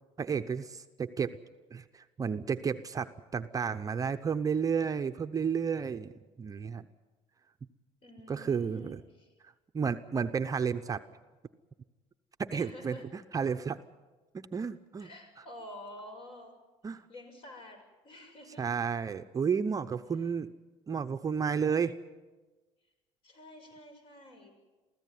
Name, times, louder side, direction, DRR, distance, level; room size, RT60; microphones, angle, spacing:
voice 1, 0.2-1.3 1.7-6.1 6.4-6.9 8.3-9.0 9.4-11.0 12.4-13.8 14.3-15.1 16.8-17.1 18.6-20.5 20.9-21.9, right 6 dB, 30° right, 8 dB, 0.8 m, -32 dB
voice 2, 8.0-9.3 12.5-13.1 15.0-16.5 17.1-18.7 23.2-24.5, left 1 dB, 45° left, 5 dB, 6.6 m, -49 dB
23.5 x 15.5 x 9.4 m, 1.3 s
cardioid pair, 110°, 13 cm